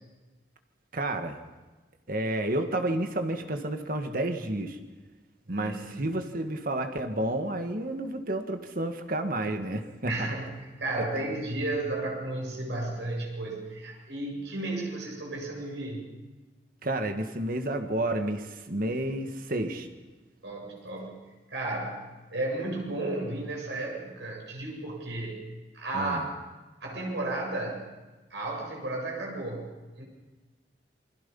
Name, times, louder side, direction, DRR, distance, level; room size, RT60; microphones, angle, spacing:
voice 1, 0.9-1.4 2.1-4.8 5.5-10.3 11.1-11.2 16.8-19.9 25.9-26.3, right 1 dB, 50° right, 6 dB, 1.8 m, -30 dB
voice 2, 5.5-6.1 10.0-16.1 20.4-21.2 21.5-25.4 25.7-26.3 26.8-27.9 28.3-30.0, right 2 dB, 75° right, -1 dB, 7.5 m, -33 dB
28.5 x 21.5 x 5.6 m, 1.2 s
head